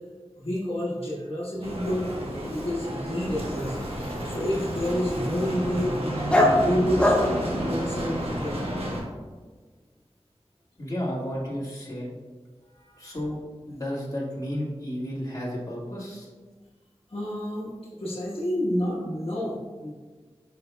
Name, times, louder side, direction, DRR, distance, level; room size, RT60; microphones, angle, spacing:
voice 1, 0.4-2.1 2.4-3.8 4.2-6.0 6.6-8.6 12.7-13.1 17.1-17.7 18.0-19.9, equal, 60° left, -7 dB, 1.5 m, -29 dB
Bicycle, 1.6-9.0, right 1 dB, 65° right, 1.3 m, -31 dB
Dog, 3.2-8.5, left 1 dB, 10° left, 1.0 m, -27 dB
voice 2, 10.8-12.1 13.0-13.4 13.7-16.3, equal, 35° left, -6 dB, 1.9 m, -32 dB
8.5 x 5.7 x 2.3 m, 1.4 s
wide cardioid pair, 70°, 11 cm